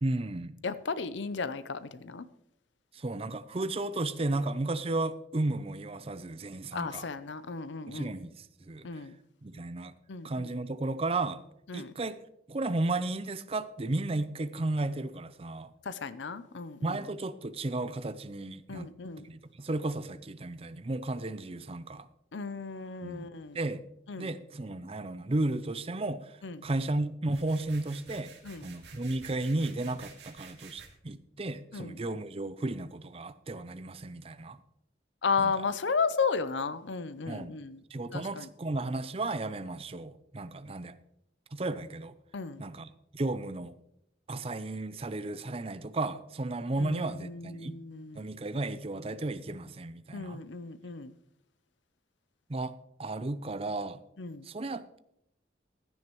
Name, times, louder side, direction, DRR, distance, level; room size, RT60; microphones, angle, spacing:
voice 1, 0.0-0.6 2.9-7.1 7.9-8.9 9.4-9.9 10.2-11.4 11.7-12.2 12.5-15.7 16.8-18.9 19.2-22.1 23.0-23.8 24.2-28.3 28.6-34.6 35.4-35.5 37.3-37.6 37.9-40.9 41.5-42.2 42.6-43.8 44.3-47.8 48.1-50.4 52.5-54.0 54.4-55.0, right 2 dB, 30° right, 0.5 m, -34 dB
voice 2, 0.6-2.3 6.7-8.1 8.8-9.2 10.1-10.5 11.7-11.9 15.8-17.0 18.7-19.3 22.3-23.6 24.1-24.3 26.4-26.6 28.4-28.7 31.7-32.0 35.2-37.8 38.1-38.5 42.3-42.6 46.8-48.3 50.1-51.1 54.2-54.5, left 5 dB, 80° left, 0.6 m, -34 dB
sound 1, 27.3-30.9, right 5 dB, 65° right, 2.3 m, -52 dB
16.0 x 10.5 x 3.1 m
head